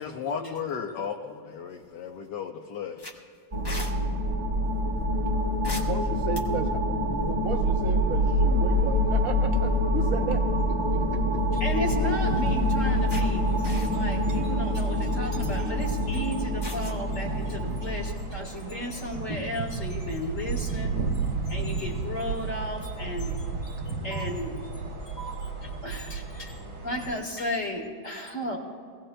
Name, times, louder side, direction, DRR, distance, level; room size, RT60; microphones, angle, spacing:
voice 1, 0.0-3.2, left 6 dB, 65° left, 1 dB, 1.3 m, -35 dB
sound 1, 1.7-2.2 2.5-2.6 3.0-3.9 5.6-6.8 8.4-8.6 9.0-9.1 11.1-11.7 12.3-12.4 13.1-13.2 13.6-14.2 14.7-14.9 16.6-17.0, left 1 dB, 20° left, 0.7 m, -40 dB
sound 2, 3.5-18.1, equal, 20° right, 1.0 m, -26 dB
voice 2, 5.8-11.4 18.6-19.0, right 6 dB, 55° right, 5 dB, 1.0 m, -35 dB
voice 3, 11.5-24.7 25.1-26.6 26.8-28.6, equal, 45° left, -1 dB, 1.8 m, -33 dB
sound 3, 11.8-27.2, right 4 dB, 85° right, 2.5 m, -36 dB
23.0 x 16.5 x 2.2 m, 2.2 s
omnidirectional pair, 2.2 m